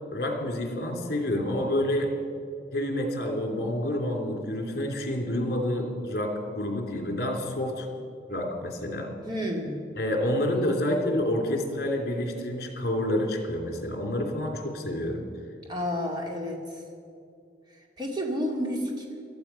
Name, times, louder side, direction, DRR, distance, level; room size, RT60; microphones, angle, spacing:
voice 1, 0.1-2.1 2.7-7.9 8.3-9.1 10.0-15.2, left 1 dB, 55° left, 2 dB, 2.9 m, -28 dB
voice 2, 9.2-9.8 15.7-16.8 18.0-19.1, equal, 25° right, 0 dB, 2.3 m, -30 dB
17.5 x 13.0 x 5.8 m, 2.4 s
head